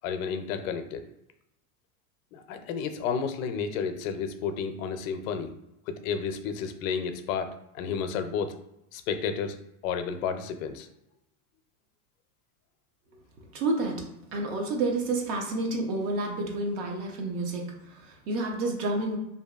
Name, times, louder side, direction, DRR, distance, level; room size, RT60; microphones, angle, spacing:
voice 1, 0.0-1.1 2.3-5.5 5.9-8.6 8.9-9.6 9.8-10.9, left 6 dB, 65° left, 8 dB, 0.5 m, -31 dB
voice 2, 13.5-14.1 14.3-19.2, right 2 dB, 60° right, 1 dB, 0.8 m, -29 dB
2.6 x 2.4 x 2.3 m, 0.85 s
supercardioid pair, 140°, 44 cm